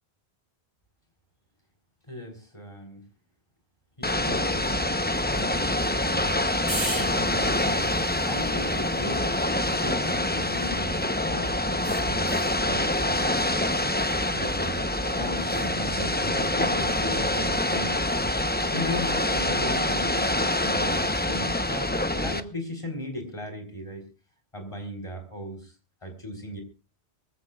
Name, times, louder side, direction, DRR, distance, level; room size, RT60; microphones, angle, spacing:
voice 1, 2.1-3.0 4.0-4.8 5.4-13.5 14.3-14.9 15.1-18.1 18.7-24.1 24.5-25.7 26.0-26.6, left 1 dB, 30° left, 3 dB, 4.2 m, -37 dB
Ocean / Boat Water vehicle, 4.0-22.4, left 1 dB, 10° left, 0.7 m, -26 dB
sound 1, 6.7-11.1 11.8-12.6 15.3-15.7, right 2 dB, 40° right, 5.6 m, -40 dB
Walk footsteps, 12.2-18.9, right 1 dB, 15° right, 7.2 m, -54 dB
23.0 x 15.0 x 2.4 m, 0.31 s
omnidirectional pair, 1.1 m